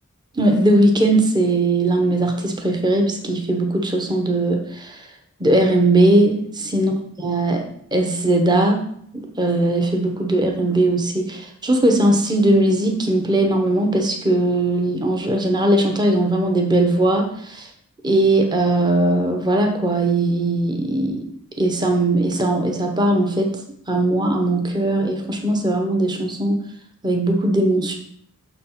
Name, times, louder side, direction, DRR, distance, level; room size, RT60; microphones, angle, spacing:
voice 1, 0.3-5.0 5.4-6.9 7.2-7.6 7.9-8.8 9.1-17.7 18.0-21.2 21.6-23.5 23.9-26.6 27.0-27.9, right 1 dB, 20° right, 3 dB, 0.9 m, -19 dB
6.4 x 4.2 x 5.8 m, 0.66 s
head